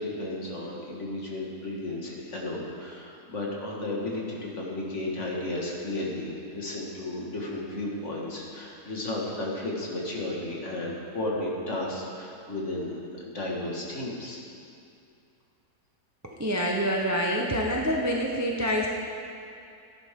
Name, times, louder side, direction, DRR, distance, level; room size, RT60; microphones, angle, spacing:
voice 1, 0.0-14.4, left 1 dB, 50° left, -3 dB, 2.1 m, -33 dB
voice 2, 16.2-18.9, equal, 15° right, -2 dB, 0.6 m, -26 dB
16.0 x 10.5 x 3.7 m, 2.5 s
omnidirectional pair, 1.7 m